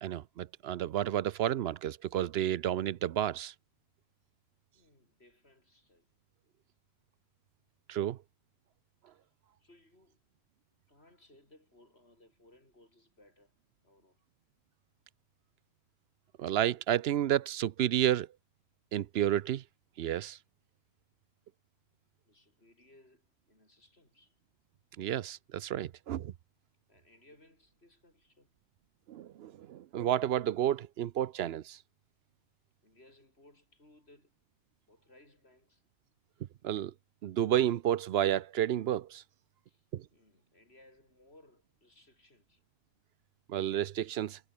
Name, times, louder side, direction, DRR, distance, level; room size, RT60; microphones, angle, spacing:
voice 1, 0.0-3.5 7.9-8.2 16.4-18.3 18.9-19.6 20.0-20.4 25.0-26.3 29.1-31.8 36.6-36.9 37.2-39.2 39.9-40.0 43.5-44.4, right 11 dB, 75° right, 0.8 m, -31 dB
voice 2, 4.7-6.1 9.1-9.3 9.6-10.2 10.9-13.6 13.8-14.2 22.2-24.4 26.9-28.6 32.8-34.4 34.9-35.8 39.7-42.6, left 1 dB, 75° left, 6.3 m, -63 dB
omnidirectional pair, 1.1 m